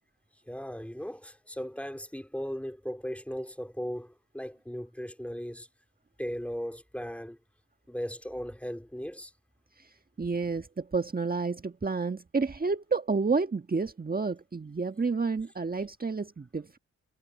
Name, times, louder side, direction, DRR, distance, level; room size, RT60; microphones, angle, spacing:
voice 1, 0.5-5.7 6.2-7.4 7.9-9.3, equal, 5° left, 2.6 m, -37 dB
voice 2, 10.2-16.8, right 4 dB, 30° right, 1.5 m, -30 dB
supercardioid pair, 45°, 32 cm